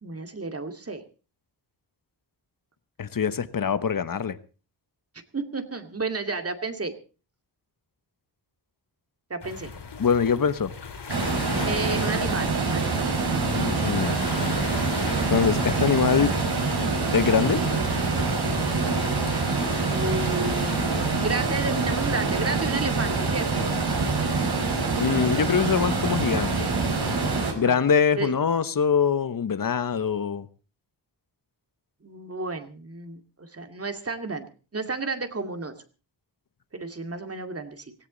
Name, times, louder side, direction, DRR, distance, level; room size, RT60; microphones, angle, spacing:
voice 1, 0.0-1.0 5.3-6.9 9.3-9.7 11.6-13.0 19.9-23.7 27.5-28.3 32.0-35.7 36.7-37.9, right 3 dB, 35° right, 7 dB, 2.4 m, -32 dB
voice 2, 3.0-4.4 10.0-10.7 13.5-14.2 15.3-16.3 17.1-17.6 25.0-26.7 27.5-30.5, left 6 dB, 50° left, 13 dB, 1.2 m, -23 dB
sound 1, 9.4-22.0, left 5 dB, 70° left, 3.3 m, -38 dB
sound 2, 11.1-27.5, right 4 dB, 65° right, 5.2 m, -25 dB
17.5 x 17.5 x 4.0 m, 0.36 s
wide cardioid pair, 120°, 42 cm